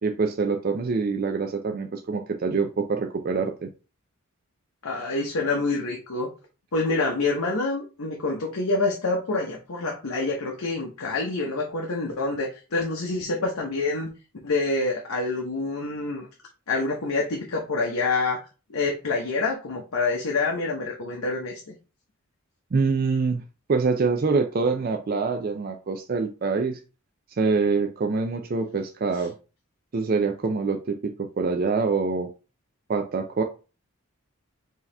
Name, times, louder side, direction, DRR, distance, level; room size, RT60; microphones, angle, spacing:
voice 1, 0.0-3.7 22.7-23.4 23.7-26.8 27.4-29.3 29.9-32.3 32.9-33.4, right 4 dB, 45° right, 0.4 m, -25 dB
voice 2, 4.8-6.3 6.7-14.1 14.4-16.3 16.7-18.4 18.7-21.6, left 3 dB, 85° left, 0.8 m, -27 dB
4.6 x 2.8 x 3.3 m
head